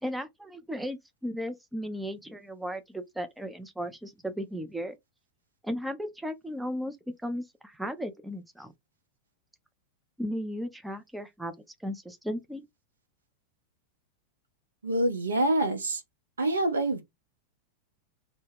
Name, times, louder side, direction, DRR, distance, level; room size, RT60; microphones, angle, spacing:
voice 1, 0.0-5.0 5.6-7.0 7.2-8.7 10.2-11.5 11.8-12.7, equal, 5° right, 0.4 m, -35 dB
voice 2, 14.8-16.0 16.4-17.0, right 1 dB, 75° right, 0.6 m, -26 dB
2.1 x 2.1 x 3.3 m
figure-of-eight pair, 90°, 0 cm